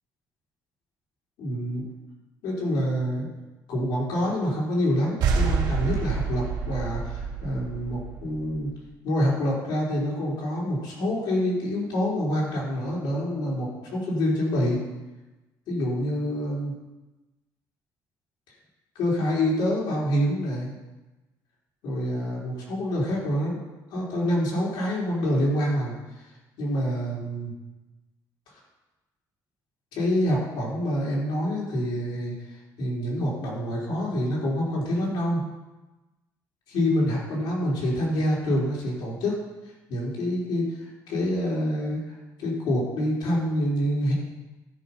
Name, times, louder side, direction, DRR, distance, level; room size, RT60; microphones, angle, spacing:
voice 1, 1.4-1.9 2.4-3.3 3.7-8.7 9.0-14.8 15.7-16.8 19.0-20.7 21.8-23.6 23.9-26.0 26.6-27.5 29.9-35.4 36.7-39.4 39.9-42.0 42.4-44.1, equal, 90° left, -4 dB, 3.9 m, -26 dB
sound 1, 5.2-8.7, right 5 dB, 80° right, 2.3 m, -27 dB
12.5 x 5.5 x 5.8 m, 1.1 s
cardioid pair, 180°, 8 cm